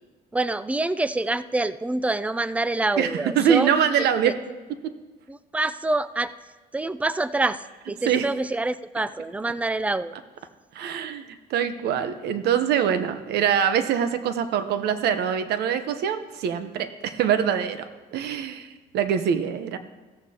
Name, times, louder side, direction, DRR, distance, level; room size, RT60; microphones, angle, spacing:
voice 1, 0.3-3.7 4.0-4.3 5.3-6.3 6.7-10.2, right 2 dB, 10° right, 15 dB, 0.4 m, -26 dB
voice 2, 3.0-4.4 8.1-8.2 10.7-19.8, right 8 dB, 75° right, 10 dB, 0.9 m, -24 dB
15.0 x 14.0 x 2.9 m, 1.3 s
cardioid pair, 110°, 17 cm